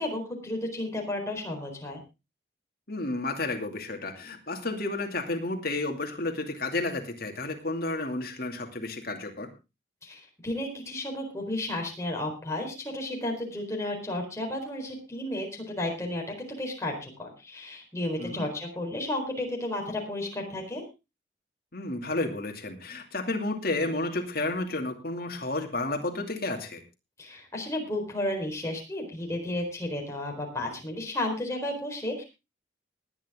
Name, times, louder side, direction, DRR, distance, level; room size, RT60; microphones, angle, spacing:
voice 1, 0.0-2.0 10.0-16.2 16.5-20.8 27.2-32.2, left 1 dB, 15° left, 1 dB, 4.2 m, -33 dB
voice 2, 2.9-9.5 18.2-18.5 21.7-26.8, left 2 dB, 50° left, 4 dB, 2.5 m, -31 dB
19.5 x 9.5 x 3.6 m, 0.28 s
head